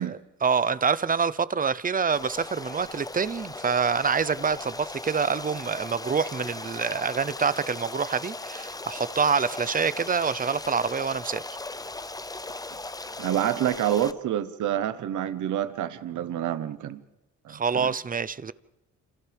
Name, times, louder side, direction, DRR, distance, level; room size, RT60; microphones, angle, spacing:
voice 1, 0.0-11.4 17.5-18.5, right 5 dB, 25° right, 0.8 m, -26 dB
Stream, 2.1-14.1, left 2 dB, 10° left, 0.7 m, -38 dB
voice 2, 13.2-17.0 17.4-17.9, right 11 dB, 75° right, 1.2 m, -28 dB
28.0 x 27.5 x 3.6 m
cardioid pair, 90°, 31 cm